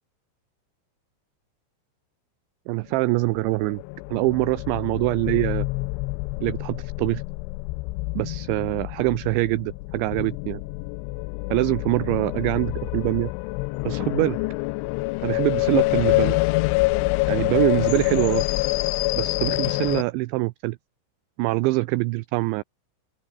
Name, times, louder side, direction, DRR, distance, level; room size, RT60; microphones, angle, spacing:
voice 1, 2.7-3.8 4.1-5.7 6.4-7.2 8.2-10.6 11.5-13.3 13.8-14.4 15.2-16.4 17.3-18.5 19.2-20.8 21.4-22.6, right 22 dB, 85° right, 2.7 m, -24 dB
sound 1, 3.1-20.0, left 24 dB, 85° left, 2.8 m, -26 dB
open air
omnidirectional pair, 5.7 m